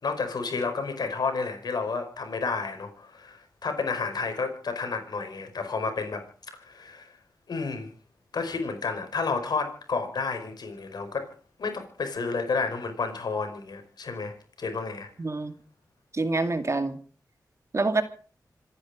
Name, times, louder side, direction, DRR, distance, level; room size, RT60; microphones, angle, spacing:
voice 1, 0.0-6.2 6.6-7.1 7.5-7.9 8.3-11.3 11.6-15.1, left 4 dB, 75° left, 6 dB, 5.0 m, -31 dB
voice 2, 15.2-15.5 16.1-17.0 17.7-18.0, right 3 dB, 45° right, 9 dB, 2.3 m, -26 dB
26.5 x 10.5 x 5.1 m, 0.42 s
cardioid pair, 55°, 7 cm